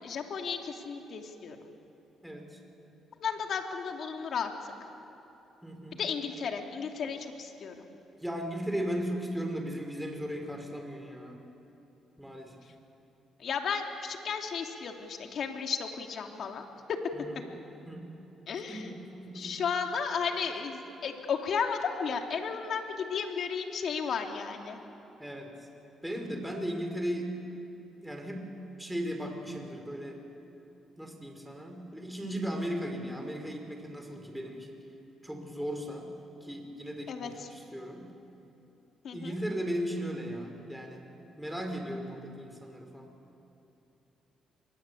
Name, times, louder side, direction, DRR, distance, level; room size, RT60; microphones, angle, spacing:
voice 1, 0.0-1.6 3.2-4.5 6.0-7.7 13.4-16.7 18.5-18.9 19.3-24.8 37.1-37.5 39.0-39.4, left 6 dB, 65° left, 4 dB, 2.8 m, -34 dB
voice 2, 2.2-2.6 5.6-6.0 8.2-11.4 12.2-12.7 17.1-17.4 17.9-18.1 18.7-19.6 25.2-25.5 26.0-27.3 28.0-28.5 28.8-30.2 31.0-34.8 35.2-36.1 36.4-38.1 39.1-41.0 41.4-43.1, equal, 5° right, 3 dB, 4.9 m, -36 dB
25.5 x 22.0 x 8.5 m, 3.0 s
supercardioid pair, 65°, 0 cm